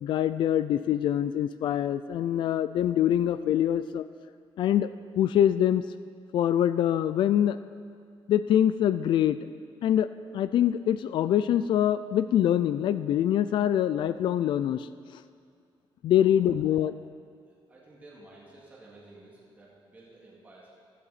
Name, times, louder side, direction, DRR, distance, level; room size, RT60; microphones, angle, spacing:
voice 1, 0.0-4.1 4.6-4.9 5.2-5.8 6.3-7.6 8.3-9.4 9.8-10.1 10.3-15.2 16.0-16.9, left 10 dB, 65° left, 13 dB, 0.4 m, -24 dB
voice 2, 16.2-16.8 17.5-20.7, right 2 dB, 20° right, -5 dB, 2.3 m, -53 dB
15.5 x 12.0 x 4.2 m, 2.3 s
cardioid pair, 175°, 9 cm